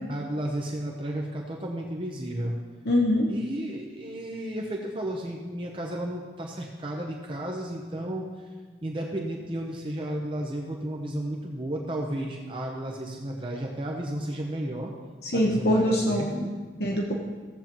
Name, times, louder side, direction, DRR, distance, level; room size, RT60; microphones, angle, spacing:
voice 1, 0.0-2.5 3.3-8.5 8.8-14.9 15.3-16.7, right 1 dB, 30° right, 0 dB, 0.8 m, -33 dB
voice 2, 2.9-3.3 15.2-16.4 16.8-17.1, left 1 dB, 60° left, -1 dB, 1.0 m, -23 dB
16.0 x 7.5 x 3.0 m, 1.4 s
head